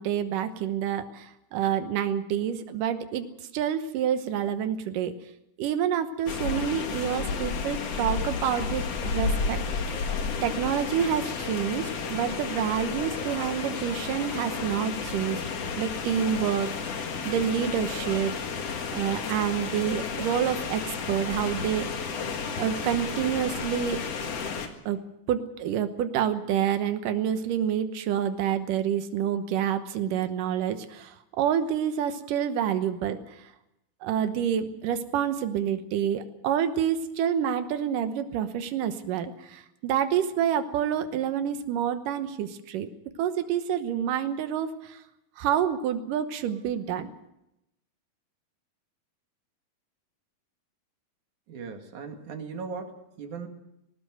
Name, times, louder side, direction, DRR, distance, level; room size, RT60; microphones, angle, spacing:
voice 1, 0.0-3.2 3.5-5.1 5.6-9.6 10.4-15.5 15.8-18.4 18.9-22.1 22.6-24.0 24.9-25.0 25.3-33.5 34.0-42.9 43.2-45.0 45.4-47.1, right 9 dB, 90° right, 9 dB, 2.7 m, -28 dB
sound 1, 6.3-24.7, left 5 dB, 55° left, 2.7 m, -32 dB
voice 2, 51.5-53.5, right 5 dB, 70° right, 4 dB, 3.5 m, -38 dB
19.5 x 18.5 x 7.8 m, 0.85 s
omnidirectional pair, 3.7 m